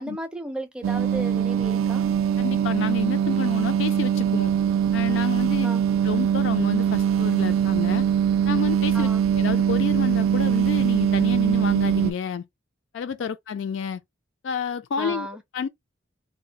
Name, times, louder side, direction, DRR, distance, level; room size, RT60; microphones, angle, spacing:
voice 1, 0.0-2.0 5.6-5.8 8.9-9.2 15.0-15.4, right 1 dB, 5° right, 0.4 m, -34 dB
sound 1, 0.8-12.1, right 8 dB, 85° right, 0.3 m, -22 dB
voice 2, 2.4-4.5 4.9-5.7 6.0-8.1 8.4-12.4 12.9-14.0 14.4-15.3 15.5-15.7, left 6 dB, 65° left, 0.3 m, -29 dB
2.3 x 2.1 x 3.8 m
head